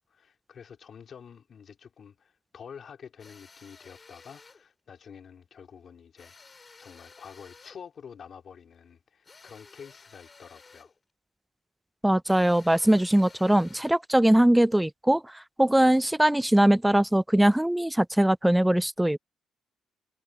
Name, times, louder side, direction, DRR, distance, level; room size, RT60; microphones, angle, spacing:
voice 1, 0.0-10.9, left 7 dB, 55° left, 3.5 m, -48 dB
sound 1, 3.2-4.7 6.2-7.8 9.2-11.0 12.2-14.1, left 4 dB, 30° left, 2.5 m, -53 dB
voice 2, 12.0-15.2 15.6-19.2, right 1 dB, 5° right, 0.4 m, -21 dB
cardioid pair, 90°, 0 cm